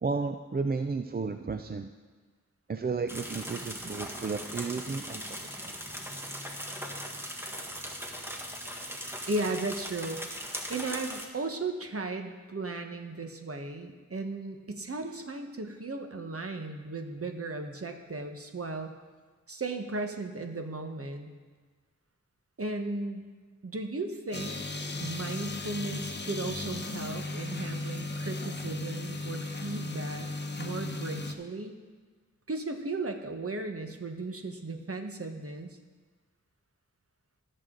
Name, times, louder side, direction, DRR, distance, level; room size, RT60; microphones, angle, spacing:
voice 1, 0.0-1.9 2.7-5.7, right 4 dB, 30° right, 7 dB, 0.5 m, -33 dB
sound 1, 3.1-11.3, equal, 10° right, 1.6 m, -39 dB
voice 2, 9.3-10.2 10.7-18.9 19.5-21.3 22.6-23.3 23.6-24.6 25.0-30.3 30.6-31.8 32.5-35.8, right 2 dB, 45° right, 5 dB, 1.3 m, -36 dB
sound 2, 24.3-31.3, left 2 dB, 35° left, 1.0 m, -36 dB
18.5 x 6.7 x 3.9 m, 1.4 s
cardioid pair, 50°, 31 cm